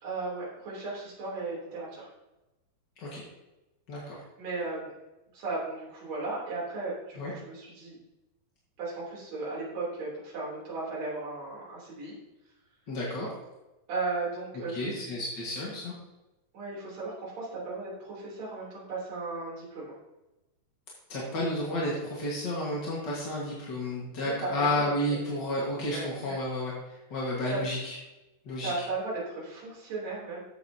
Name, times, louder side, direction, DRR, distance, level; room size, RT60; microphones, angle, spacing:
voice 1, 0.0-2.1 4.0-4.9 5.3-8.0 8.8-12.2 13.9-15.2 16.5-20.0 24.4-24.7 25.1-25.2 25.9-26.4 27.5-27.6 28.6-30.4, right 3 dB, 50° right, -6 dB, 4.5 m, -36 dB
voice 2, 12.9-13.3 14.7-15.9 21.1-27.9 28.5-28.7, left 1 dB, 40° left, -5 dB, 1.7 m, -31 dB
12.5 x 8.1 x 2.9 m, 1.0 s
omnidirectional pair, 4.2 m